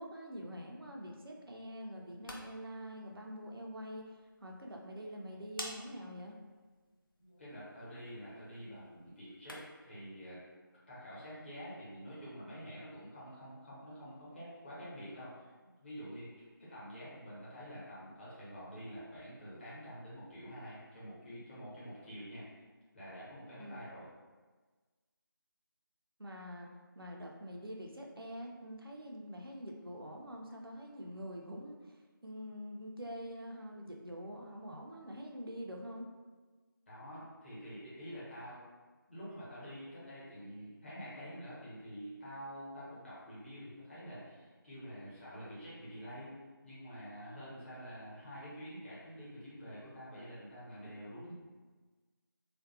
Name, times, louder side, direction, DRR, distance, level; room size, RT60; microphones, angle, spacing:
voice 1, 0.0-6.4 23.6-23.8 26.2-26.7 27.0-32.0 32.2-36.1, equal, 80° right, 0 dB, 0.5 m, -45 dB
sound 1, 2.0-9.9, left 1 dB, 65° left, 0.5 m, -53 dB
voice 2, 7.2-10.4 10.9-16.3 16.6-22.4 22.9-24.1 36.9-38.6 39.1-46.3 46.6-51.3, equal, 30° left, -10 dB, 1.0 m, -47 dB
2.4 x 2.2 x 2.7 m, 1.3 s
figure-of-eight pair, 165°, 12 cm